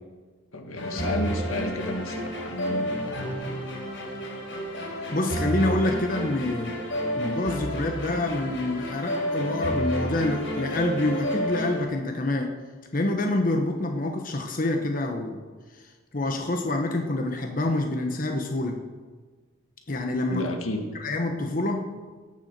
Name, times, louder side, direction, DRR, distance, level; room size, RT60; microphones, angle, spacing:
voice 1, 0.5-3.3 20.3-20.8, left 1 dB, 85° left, 4 dB, 1.8 m, -32 dB
sound 1, 0.8-11.8, equal, 65° left, 4.4 m, -31 dB
voice 2, 5.1-6.8 7.2-12.5 12.9-15.4 16.1-18.8 19.9-20.5 21.0-21.9, left 2 dB, 40° left, 3 dB, 1.1 m, -27 dB
18.0 x 7.1 x 6.7 m, 1.4 s
head